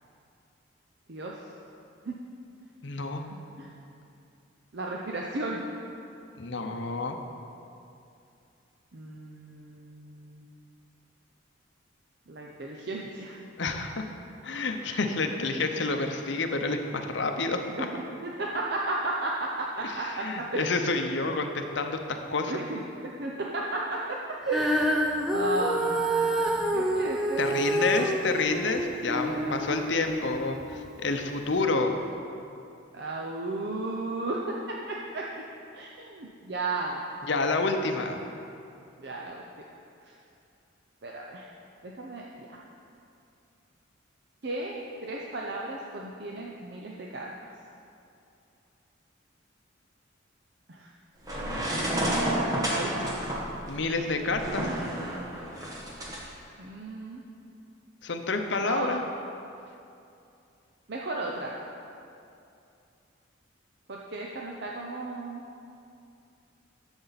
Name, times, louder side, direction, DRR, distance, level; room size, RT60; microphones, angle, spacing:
voice 1, 1.1-1.4 2.1-2.2 3.6-3.7 4.7-5.6 8.9-10.5 12.3-13.4 17.8-20.7 22.5-24.2 24.5-25.0 25.3-27.6 27.9-29.7 32.9-35.4 35.7-37.0 39.0-39.4 40.0-40.1 41.0-41.5 41.8-42.6 44.4-47.3 50.7-50.9 51.7-53.3 56.6-57.2 58.6-58.9 59.4-59.5 60.9-61.5 63.9-65.4, right 2 dB, 50° right, -2 dB, 0.6 m, -34 dB
voice 2, 2.8-3.2 6.4-7.2 13.6-14.0 14.4-17.9 19.8-22.5 27.4-32.0 37.3-38.2 53.7-54.7 58.0-59.0, left 3 dB, 60° left, 5 dB, 0.7 m, -29 dB
Female singing, 24.5-30.8 31.5-31.6, equal, ahead, 0.6 m, -28 dB
sound 1, 51.2-56.2, right 1 dB, 15° right, 1.3 m, -30 dB
12.0 x 7.0 x 4.1 m, 2.6 s
head